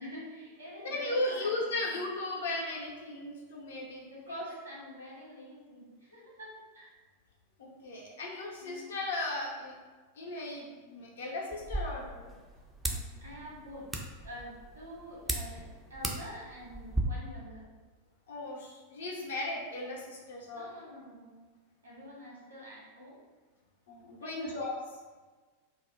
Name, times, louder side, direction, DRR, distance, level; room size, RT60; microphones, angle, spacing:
voice 1, 0.0-1.9 4.1-6.9 8.6-9.0 13.2-13.9 14.2-17.6 20.5-21.3 21.8-23.1 24.2-24.6, equal, 70° right, -4 dB, 1.0 m, -47 dB
voice 2, 0.8-4.5 7.6-9.7 10.2-12.3 12.9-13.0 18.3-20.7 23.9-24.7, left 2 dB, 60° left, -2 dB, 0.7 m, -36 dB
sound 1, 11.5-17.0, right 2 dB, 10° right, 0.4 m, -38 dB
2.4 x 2.1 x 3.6 m, 1.3 s
figure-of-eight pair, 90°, 0 cm